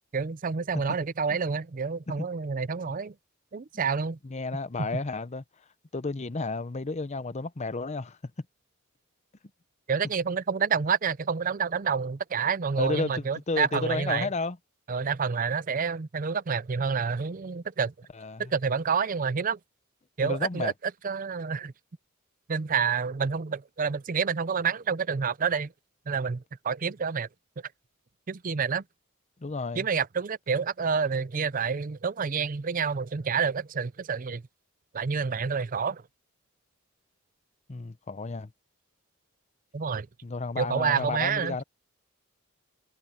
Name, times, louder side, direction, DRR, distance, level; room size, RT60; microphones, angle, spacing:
voice 1, 0.1-3.1 3.5-4.2 9.9-14.3 14.9-17.9 18.4-19.6 20.2-20.7 21.0-21.7 22.5-25.7 26.1-27.3 28.3-28.8 29.8-34.4 34.9-36.0 39.7-40.1 40.6-41.6, right 6 dB, 40° right, 0.5 m, -28 dB
voice 2, 4.2-5.4 5.9-8.2 12.8-14.6 18.1-18.5 20.2-20.7 29.4-29.9 37.7-38.5 40.2-41.6, left 3 dB, 35° left, 0.7 m, -32 dB
head